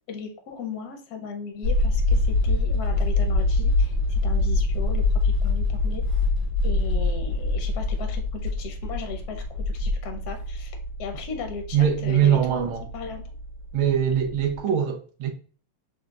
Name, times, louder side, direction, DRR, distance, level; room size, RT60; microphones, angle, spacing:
voice 1, 0.1-6.0 6.6-13.2 14.6-14.7, left 6 dB, 60° left, 1.1 m, -37 dB
sound 1, 1.6-14.6, left 2 dB, 55° right, 2.6 m, -25 dB
voice 2, 11.7-12.8 13.7-15.3, right 9 dB, 75° right, 1.6 m, -22 dB
4.9 x 3.7 x 2.4 m
omnidirectional pair, 2.3 m